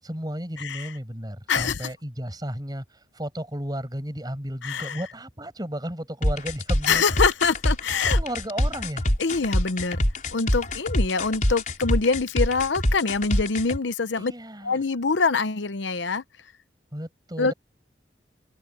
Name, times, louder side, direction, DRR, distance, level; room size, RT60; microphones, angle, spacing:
voice 1, 0.0-7.0 8.1-9.1 14.1-14.8 16.9-17.5, equal, 20° right, 7.8 m, -34 dB
voice 2, 1.5-1.9 4.6-5.0 6.9-8.2 9.2-10.0 10.3-14.3 14.6-16.2 17.4-17.5, left 4 dB, 75° left, 0.8 m, -24 dB
sound 1, 6.2-13.8, left 1 dB, 45° left, 4.9 m, -24 dB
open air
head